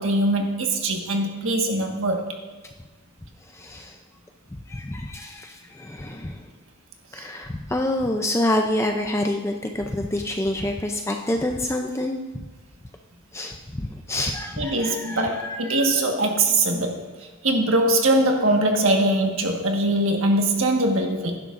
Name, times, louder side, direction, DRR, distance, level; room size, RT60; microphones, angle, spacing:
voice 1, 0.0-2.3 7.2-7.3 14.6-17.0 17.4-21.4, right 1 dB, 65° right, 2 dB, 1.5 m, -22 dB
voice 2, 3.5-4.0 4.7-6.5 7.1-12.4 13.3-15.9, left 1 dB, 10° left, 3 dB, 0.4 m, -27 dB
16.0 x 11.5 x 2.5 m, 1.3 s
head